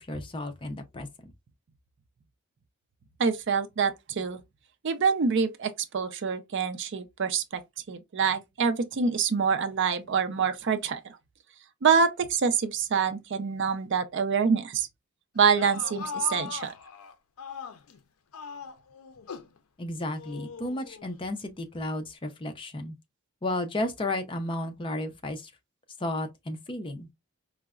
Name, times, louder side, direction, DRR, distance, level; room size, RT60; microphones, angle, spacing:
voice 1, 0.0-1.3 19.8-22.9 23.4-25.5 26.0-27.1, left 1 dB, 25° left, 0.4 m, -33 dB
voice 2, 3.2-4.4 4.8-7.6 7.9-11.0 11.8-14.9 15.4-16.7, right 6 dB, 55° right, 0.4 m, -26 dB
sound 1, 15.4-18.0 18.3-19.6 20.1-21.2, left 6 dB, 80° left, 0.5 m, -39 dB
4.5 x 2.1 x 2.3 m
head